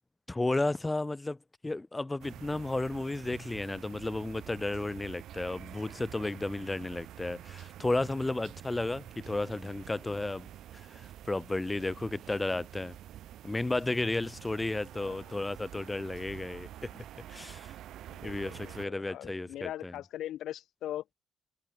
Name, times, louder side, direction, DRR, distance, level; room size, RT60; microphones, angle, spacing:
voice 1, 0.3-1.4 1.6-10.5 10.9-13.0 13.4-16.7 17.3-17.7 18.2-19.9, left 2 dB, 15° left, 0.5 m, -33 dB
sound 1, 2.2-18.9, right 12 dB, 75° right, 1.6 m, -48 dB
voice 2, 14.9-15.3 18.1-21.0, left 12 dB, 80° left, 0.7 m, -41 dB
cardioid pair, 90°, 0 cm